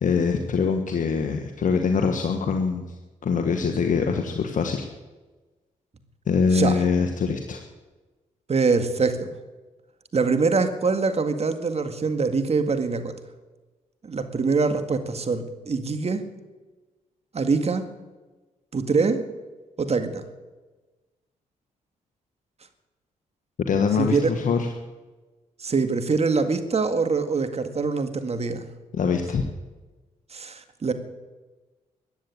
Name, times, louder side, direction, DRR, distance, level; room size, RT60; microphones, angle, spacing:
voice 1, 0.0-2.8 3.2-4.9 6.3-7.6 23.7-24.7 28.9-29.4, left 5 dB, 60° left, 5 dB, 1.5 m, -23 dB
voice 2, 8.5-9.3 10.1-13.2 14.0-16.2 17.3-17.9 18.7-19.2 19.8-20.2 24.0-24.2 25.6-28.7 30.3-30.9, right 4 dB, 45° right, 8 dB, 2.0 m, -24 dB
14.5 x 9.6 x 9.8 m, 1.2 s
supercardioid pair, 50°, 15 cm